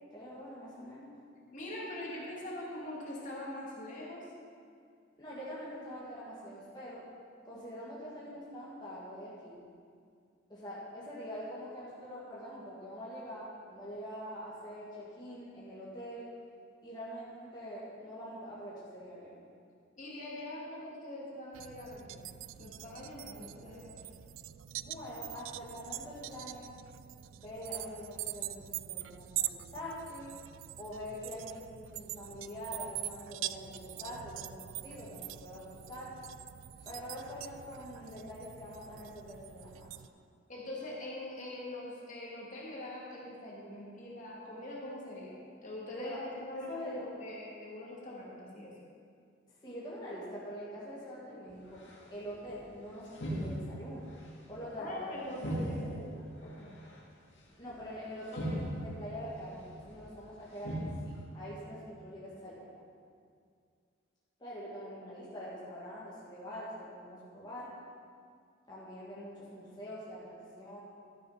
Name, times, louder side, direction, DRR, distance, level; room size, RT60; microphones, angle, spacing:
voice 1, 0.1-1.1 5.2-7.0 7.4-9.6 10.5-16.3 16.8-19.4 24.8-26.7 27.4-30.4 30.8-36.2 36.8-40.1 46.0-46.2 46.5-47.0 49.6-51.8 52.1-54.1 54.5-55.2 55.6-56.0 57.6-60.8 61.0-62.8 64.4-67.7 68.7-70.8, equal, 20° left, -8 dB, 2.0 m, -44 dB
voice 2, 1.5-4.3 20.0-22.3 22.6-23.9 40.5-45.4 45.6-48.7 54.8-56.1 56.4-56.7, left 1 dB, 40° left, -5 dB, 2.3 m, -43 dB
sound 1, 21.5-40.1, right 13 dB, 85° right, 0.3 m, -44 dB
sound 2, 51.5-52.6 53.0-54.2 54.5-54.7 55.3-56.1 56.4-57.0 57.7-57.8 58.3-59.1 59.7-60.1 60.5-61.2, equal, 65° left, 2.2 m, -38 dB
12.5 x 6.8 x 5.7 m, 2.2 s
head